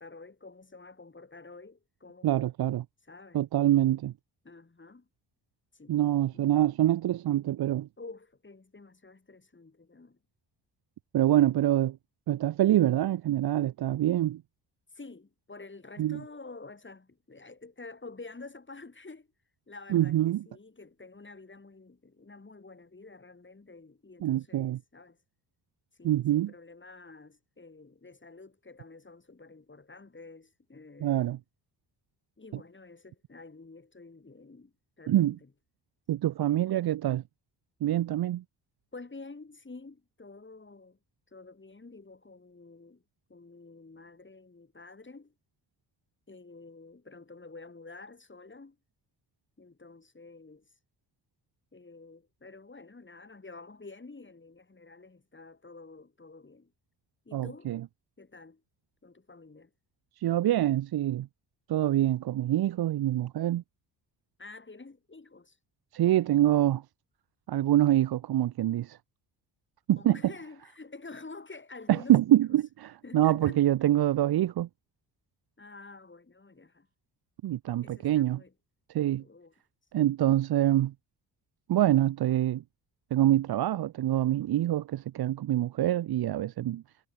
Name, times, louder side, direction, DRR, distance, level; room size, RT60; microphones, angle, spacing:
voice 1, 0.0-2.3 3.1-3.4 4.4-5.1 5.7-6.0 6.3-6.5 8.0-10.2 14.9-19.3 19.7-25.2 26.0-31.4 32.4-35.5 38.9-41.0 41.3-43.0 43.3-45.3 46.3-48.8 49.6-50.7 51.7-56.7 57.3-57.8 58.2-58.6 59.0-59.7 64.4-65.6 70.0-72.6 73.0-73.6 75.6-76.9 77.8-78.5 79.2-79.5, left 3 dB, 25° left, 4.3 m, -49 dB
voice 2, 2.2-2.8 3.3-4.1 5.9-7.9 11.1-12.0 12.3-14.4 16.0-16.2 19.9-20.4 24.2-24.8 26.0-26.5 31.0-31.4 35.1-35.4 36.1-37.2 37.8-38.4 57.3-57.8 60.2-61.3 61.7-63.6 65.9-66.8 67.5-69.0 69.9-70.2 71.9-74.7 77.4-78.4 78.9-79.2 79.9-80.9 81.7-82.6 83.1-86.8, right 13 dB, 55° right, 0.7 m, -25 dB
supercardioid pair, 55°, 46 cm